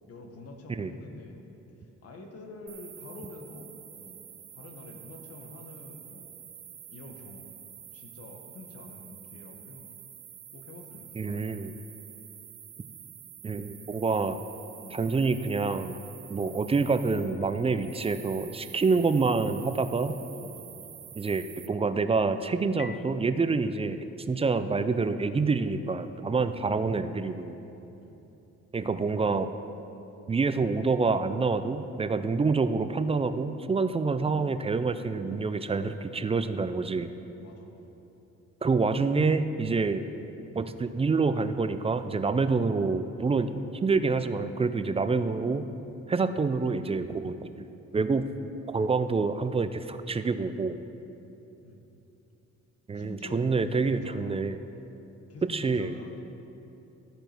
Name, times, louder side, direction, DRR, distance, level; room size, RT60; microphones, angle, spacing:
voice 1, 0.1-1.4 2.0-4.2 4.5-6.3 6.9-7.5 7.9-9.8 10.5-11.6 14.8-15.0 20.3-21.0 26.3-26.7 28.0-28.2 35.7-36.2 37.4-37.9 39.6-39.8 51.6-51.9 52.9-54.6 55.3-56.2, left 2 dB, 50° left, 3 dB, 1.3 m, -47 dB
sound 1, 2.7-21.7, right 10 dB, 55° right, 0.7 m, -48 dB
voice 2, 11.1-11.7 13.4-14.4 14.9-16.0 16.3-20.1 21.2-24.0 24.3-27.6 28.7-29.5 30.3-37.1 38.6-40.0 40.5-43.5 43.8-45.7 46.1-47.4 47.9-48.2 48.7-50.8 52.9-54.6 55.4-55.9, right 4 dB, 20° right, 10 dB, 0.4 m, -27 dB
Marimba xylophone, 22.8-25.4, left 7 dB, 35° left, 0.5 m, -48 dB
14.5 x 5.1 x 4.5 m, 3.0 s
cardioid pair, 90°, 30 cm